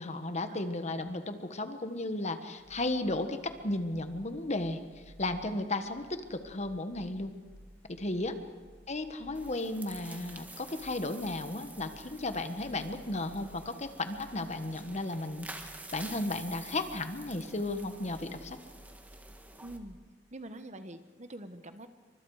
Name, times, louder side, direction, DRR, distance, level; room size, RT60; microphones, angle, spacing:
voice 1, 0.0-4.8 5.2-7.3 7.9-8.3 8.9-15.5 15.9-18.6, left 2 dB, 35° left, 8 dB, 1.4 m, -34 dB
sound 1, 2.6-19.9, equal, 10° left, 6.7 m, -57 dB
sound 2, 9.3-19.8, right 2 dB, 10° right, 1.7 m, -50 dB
voice 2, 19.6-20.0 20.3-21.9, right 1 dB, 40° right, 9 dB, 1.2 m, -45 dB
28.5 x 25.0 x 4.9 m, 1.4 s
head